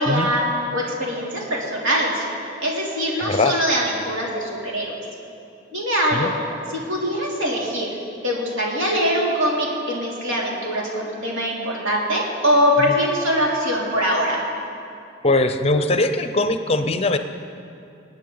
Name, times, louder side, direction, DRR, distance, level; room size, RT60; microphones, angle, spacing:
voice 1, 0.0-2.2 2.6-5.0 5.7-6.4 6.7-7.9 8.2-14.4, equal, 80° right, -4 dB, 3.0 m, -22 dB
voice 2, 3.2-3.5 6.1-6.3 15.2-17.2, left 2 dB, 30° left, 8 dB, 0.6 m, -20 dB
26.0 x 9.1 x 3.9 m, 2.6 s
head